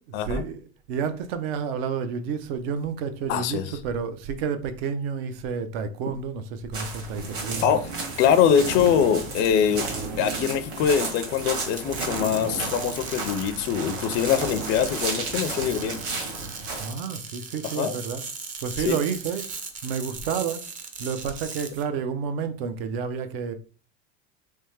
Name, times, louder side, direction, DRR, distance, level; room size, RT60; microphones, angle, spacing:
voice 1, 0.3-7.7 16.8-18.2 18.6-19.5 19.8-20.7 21.0-23.5, right 6 dB, 70° right, 0.6 m, -30 dB
voice 2, 3.3-3.6 7.6-7.8 8.2-9.9 10.2-16.0 17.6-18.0 18.8-19.0, left 8 dB, 35° left, 0.4 m, -23 dB
sound 1, 6.7-16.9, right 3 dB, 45° right, 1.4 m, -34 dB
sound 2, 7.1-16.8, right 3 dB, 85° right, 1.1 m, -37 dB
sound 3, 11.5-21.8, right 5 dB, 25° right, 0.5 m, -38 dB
3.4 x 3.2 x 3.1 m
supercardioid pair, 135°, 32 cm